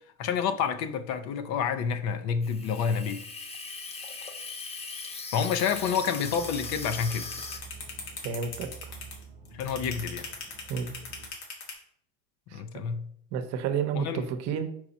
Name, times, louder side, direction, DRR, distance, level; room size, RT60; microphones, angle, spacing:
voice 1, 0.2-3.2 5.3-7.2 9.5-10.3 12.5-13.1 13.9-14.3, left 7 dB, 55° left, 0.6 m, -29 dB
Water tap faucet / Sink (filling or washing), 2.4-7.6, left 4 dB, 20° left, 0.7 m, -39 dB
sound 1, 5.3-11.7, left 5 dB, 90° left, 1.9 m, -39 dB
sound 2, 5.7-11.3, right 5 dB, 20° right, 0.8 m, -47 dB
voice 2, 8.2-8.7 10.7-10.9 12.5-12.8 13.3-14.7, right 7 dB, 55° right, 0.9 m, -31 dB
4.8 x 4.7 x 4.1 m
supercardioid pair, 125°, 32 cm